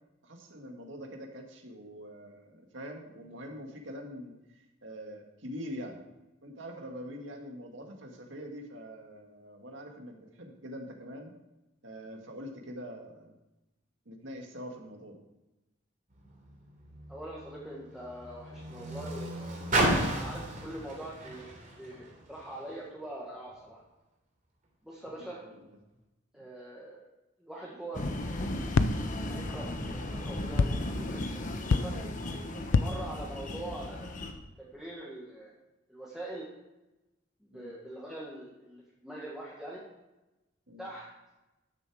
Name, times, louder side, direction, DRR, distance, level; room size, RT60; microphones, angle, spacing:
voice 1, 0.2-6.0 6.4-11.3 11.8-13.3 14.1-15.2 25.2-25.6 37.5-37.7 40.7-40.8, equal, 70° right, 2 dB, 1.9 m, -44 dB
Car, 16.1-22.7 23.5-23.6, right 1 dB, 45° right, 3.2 m, -34 dB
voice 2, 17.1-19.8 20.1-21.5 21.8-23.8 24.8-25.4 26.3-27.0 27.4-28.6 29.3-31.9 32.8-34.2 34.6-35.5 35.9-36.5 37.4-39.8 40.8-41.0, right 1 dB, 5° right, -6 dB, 1.5 m, -43 dB
sound 1, 27.9-34.3, left 1 dB, 40° left, 1.2 m, -36 dB
sound 2, 28.7-29.3 30.6-31.1 31.7-32.3 32.7-33.3, left 4 dB, 75° left, 0.5 m, -28 dB
13.0 x 7.0 x 4.9 m, 1.0 s
head